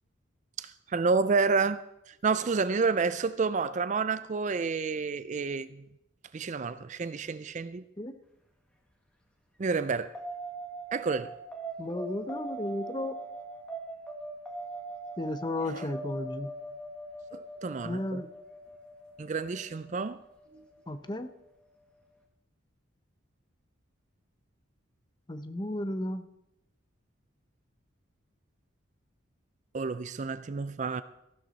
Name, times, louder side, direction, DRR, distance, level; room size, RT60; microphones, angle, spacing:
voice 1, 0.6-1.8 2.2-5.8 6.3-7.8 9.6-10.1 10.9-11.3 15.7-15.8 17.3-18.2 19.2-20.2 29.7-31.0, right 4 dB, 35° right, 0.4 m, -29 dB
sound 1, 10.1-20.9, right 2 dB, 5° left, 1.6 m, -41 dB
voice 2, 11.8-13.2 15.2-16.5 17.8-18.3 20.9-21.3 25.3-26.3, left 1 dB, 20° left, 0.7 m, -34 dB
14.5 x 12.0 x 4.0 m
head